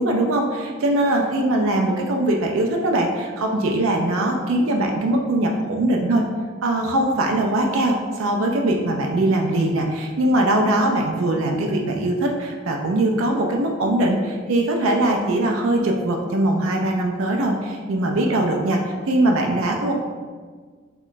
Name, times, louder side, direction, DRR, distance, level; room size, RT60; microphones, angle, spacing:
voice 1, 0.0-6.2 6.6-18.8 19.1-19.9, right 1 dB, 80° right, 1 dB, 0.4 m, -21 dB
3.0 x 2.2 x 3.9 m, 1.5 s
head